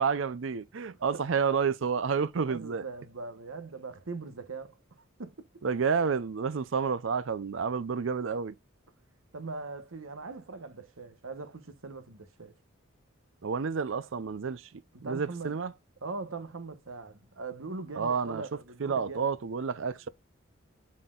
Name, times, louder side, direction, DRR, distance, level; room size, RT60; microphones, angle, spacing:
voice 1, 0.0-2.8 5.6-8.6 13.4-14.7 15.0-15.7 18.0-18.4 18.8-20.1, right 6 dB, 70° right, 0.5 m, -30 dB
voice 2, 2.5-4.8 5.2-5.3 9.3-12.5 14.9-15.6 16.0-19.3, right 3 dB, 90° right, 1.1 m, -41 dB
11.5 x 4.2 x 2.4 m
head